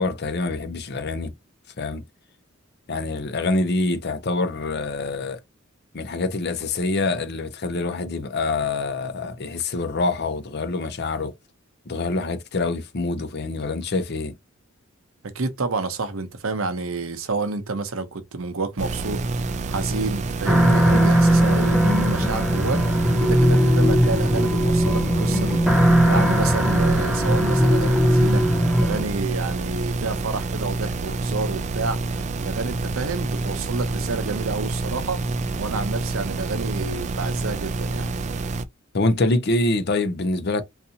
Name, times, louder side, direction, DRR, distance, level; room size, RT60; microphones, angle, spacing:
voice 1, 0.0-1.3 1.8-2.0 2.9-5.4 5.9-11.3 11.9-14.3 38.9-40.6, left 2 dB, 50° left, 0.6 m, -25 dB
voice 2, 15.3-23.0 23.2-25.8 26.0-28.4 28.8-32.0 32.4-35.2 35.6-38.1, right 3 dB, 75° right, 0.8 m, -29 dB
sound 1, 18.8-38.6, right 3 dB, 35° right, 0.3 m, -28 dB
sound 2, 20.5-29.0, equal, 5° right, 0.6 m, -19 dB
4.0 x 2.7 x 2.8 m
head